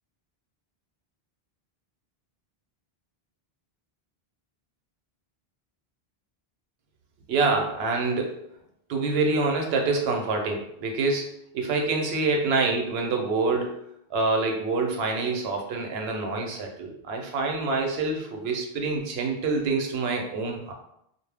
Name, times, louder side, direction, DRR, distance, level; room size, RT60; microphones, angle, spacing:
voice 1, 7.3-8.4 8.9-13.8 14.1-20.7, right 3 dB, 80° right, 2 dB, 0.8 m, -26 dB
2.1 x 2.0 x 3.2 m, 0.76 s
omnidirectional pair, 1.0 m